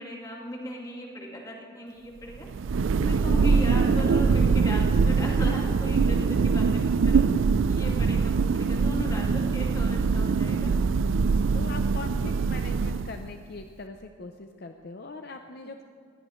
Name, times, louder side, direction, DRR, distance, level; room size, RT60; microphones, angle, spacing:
voice 1, 0.0-2.5 2.9-7.2 7.7-10.8, equal, 15° left, -1 dB, 2.1 m, -37 dB
Thunder, 2.4-13.4, right 5 dB, 70° right, 0.4 m, -23 dB
voice 2, 7.8-8.2 11.5-15.8, left 3 dB, 50° left, 5 dB, 0.6 m, -41 dB
20.5 x 16.5 x 3.1 m, 2.3 s
head